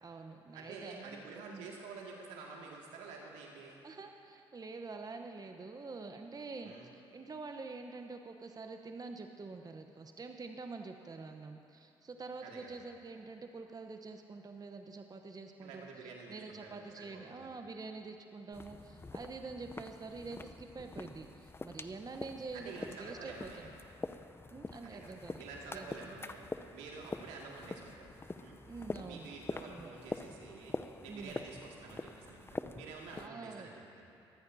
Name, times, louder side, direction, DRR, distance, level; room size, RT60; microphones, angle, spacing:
voice 1, 0.0-1.2 1.5-1.7 3.8-23.7 24.5-25.4 25.7-26.1 28.7-29.3 29.6-29.9 31.1-31.4 33.1-33.7, right 3 dB, 30° right, 5 dB, 0.9 m, -46 dB
voice 2, 0.5-3.8 6.6-6.9 12.4-12.7 15.6-17.5 22.5-23.7 24.8-25.1 25.4-26.4 26.7-28.1 28.4-28.6 29.0-30.8 31.0-33.7, right 4 dB, 80° right, -2 dB, 2.2 m, -49 dB
sound 1, 18.5-33.3, left 3 dB, 20° left, 0.6 m, -45 dB
22.0 x 15.5 x 2.8 m, 2.6 s
hypercardioid pair, 50°, 12 cm